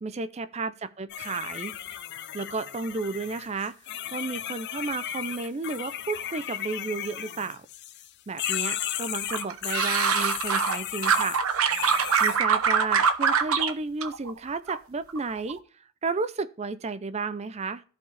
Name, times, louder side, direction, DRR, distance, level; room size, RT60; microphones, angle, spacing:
voice 1, 0.0-1.7 2.3-3.7 4.1-7.6 8.3-11.4 12.2-15.6 16.0-17.8, right 4 dB, 30° right, 0.4 m, -32 dB
sound 1, 1.1-8.1 8.4-12.4, left 11 dB, 50° left, 0.5 m, -34 dB
sound 2, 9.3-10.8 11.0-13.7 14.0-14.8 15.1-15.5, right 6 dB, 75° right, 0.8 m, -24 dB
14.0 x 4.7 x 3.3 m
head